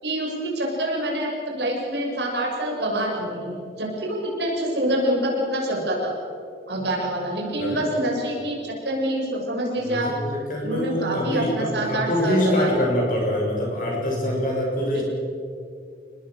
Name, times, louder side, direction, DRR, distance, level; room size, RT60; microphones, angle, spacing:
voice 1, 0.0-6.1 6.7-10.1 10.6-12.7, right 1 dB, 75° right, -1 dB, 7.0 m, -26 dB
voice 2, 9.8-15.0, equal, 50° left, -1 dB, 7.3 m, -24 dB
28.5 x 20.5 x 6.6 m, 2.4 s
head